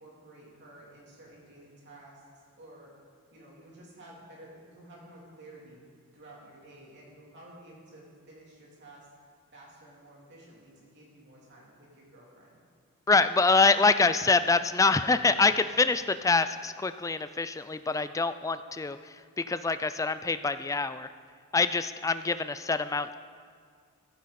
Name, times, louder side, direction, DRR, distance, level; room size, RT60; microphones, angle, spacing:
voice 1, 0.0-2.9 3.3-9.1 9.5-12.6, right 1 dB, 50° right, -4 dB, 3.4 m, -52 dB
voice 2, 13.1-21.1 21.5-23.1, left 4 dB, 15° left, 12 dB, 0.3 m, -25 dB
14.5 x 11.5 x 4.3 m, 2.1 s
head